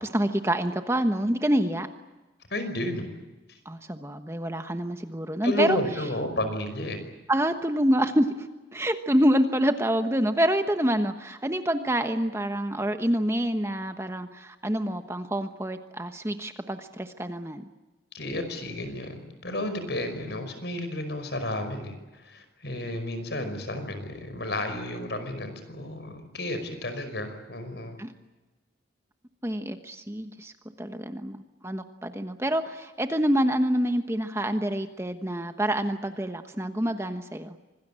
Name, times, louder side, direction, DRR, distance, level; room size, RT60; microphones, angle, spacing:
voice 1, 0.0-1.9 3.6-5.8 7.3-8.5 8.7-17.6 28.0-28.1 29.4-30.5 30.8-37.5, equal, 15° right, 8 dB, 1.2 m, -27 dB
voice 2, 2.5-3.1 5.4-7.0 18.1-21.9 22.2-28.0, left 1 dB, 70° left, 9 dB, 5.4 m, -32 dB
26.0 x 20.0 x 8.9 m, 1.1 s
head